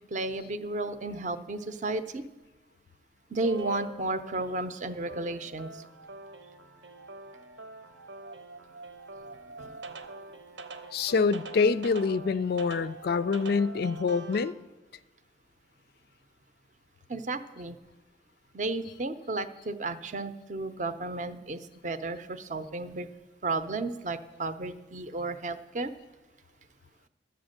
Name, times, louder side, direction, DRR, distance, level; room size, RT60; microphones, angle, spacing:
voice 1, 0.1-2.2 3.3-5.7 9.6-9.8 17.1-17.7 18.5-23.1 23.4-25.9, right 2 dB, 40° right, 0.6 m, -33 dB
sound 1, 3.4-14.5, right 3 dB, 75° right, 0.9 m, -44 dB
voice 2, 10.9-14.5, left 4 dB, 55° left, 0.3 m, -26 dB
11.5 x 8.1 x 6.5 m
head